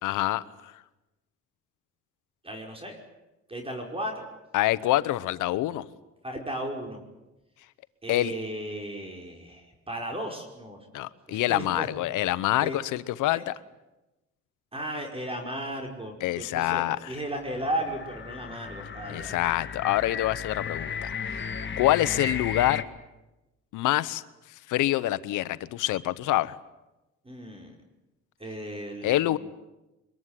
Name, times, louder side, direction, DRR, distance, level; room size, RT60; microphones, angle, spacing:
voice 1, 0.0-0.4 4.5-5.9 8.1-8.3 10.9-13.5 16.2-17.1 19.1-21.5 21.8-22.8 23.7-24.2 24.7-26.5 29.0-29.4, left 15 dB, 90° left, 16 dB, 1.1 m, -26 dB
voice 2, 2.4-3.0 3.5-4.2 6.2-7.0 8.0-11.0 11.3-11.9 12.6-12.8 13.3-13.4 14.7-19.4 27.2-27.7 28.4-29.4, right 1 dB, 20° right, 2 dB, 5.3 m, -35 dB
sound 1, 17.2-22.8, left 6 dB, 40° left, 1.9 m, -35 dB
24.0 x 22.0 x 10.0 m, 1.0 s
cardioid pair, 90°, 30 cm